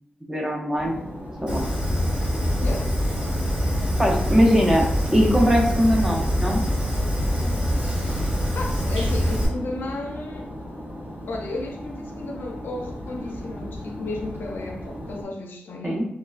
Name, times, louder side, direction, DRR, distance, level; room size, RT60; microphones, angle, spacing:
voice 1, 0.3-1.0 1.4-1.6 4.0-4.9 5.1-6.6 15.8-16.1, equal, 10° right, 0.5 m, -20 dB
sound 1, 0.8-15.2, equal, 85° right, 1.4 m, -37 dB
Fire, 1.5-9.5, equal, 30° right, 1.2 m, -24 dB
voice 2, 8.5-10.5 11.3-16.1, left 2 dB, 75° left, 0.4 m, -33 dB
2.9 x 2.2 x 2.3 m
wide cardioid pair, 100°, 4 cm